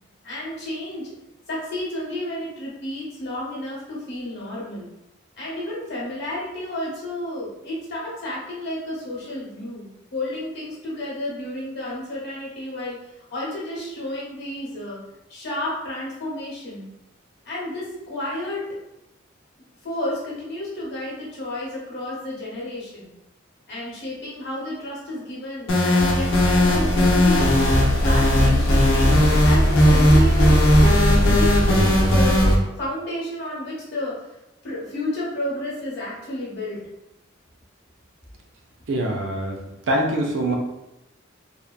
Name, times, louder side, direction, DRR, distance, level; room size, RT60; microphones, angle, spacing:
voice 1, 0.2-1.1 1.5-4.9 5.4-13.0 13.3-15.0 15.3-16.9 17.4-18.7 19.8-23.1 23.7-30.6 31.3-34.4 34.6-36.8, left 1 dB, 55° left, -6 dB, 1.0 m, -31 dB
sound 1, 25.7-32.6, equal, 75° left, 0.7 m, -16 dB
voice 2, 38.9-39.6 39.9-40.6, right 1 dB, 65° right, 1 dB, 0.5 m, -23 dB
2.9 x 2.1 x 2.3 m, 0.93 s
head